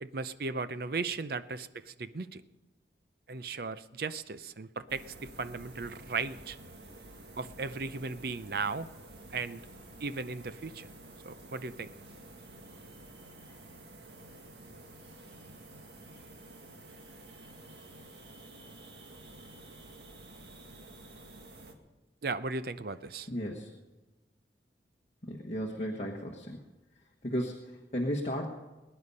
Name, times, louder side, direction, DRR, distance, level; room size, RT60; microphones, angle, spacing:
voice 1, 0.0-2.4 3.3-6.6 7.4-8.9 9.3-9.7 10.0-10.9 11.2-11.9 22.2-23.3, right 4 dB, 55° right, 13 dB, 0.6 m, -36 dB
sound 1, 4.9-21.7, right 2 dB, 70° right, 1.9 m, -51 dB
voice 2, 23.3-23.7 25.2-26.7 26.9-28.5, equal, 35° left, -1 dB, 1.3 m, -35 dB
20.5 x 9.9 x 5.5 m, 1.1 s
head